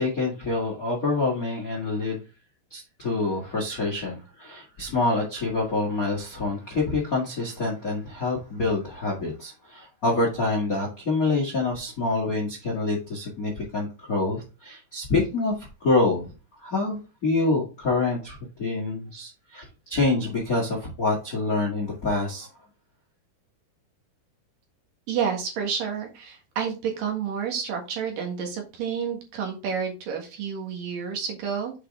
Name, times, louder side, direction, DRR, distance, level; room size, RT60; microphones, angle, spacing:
voice 1, 0.0-2.2 2.7-15.5 15.8-16.3 16.6-22.5, left 3 dB, 60° left, 0 dB, 0.9 m, -26 dB
voice 2, 25.1-31.7, right 7 dB, 60° right, 2 dB, 3.0 m, -30 dB
8.1 x 4.7 x 3.4 m, 0.31 s
omnidirectional pair, 4.7 m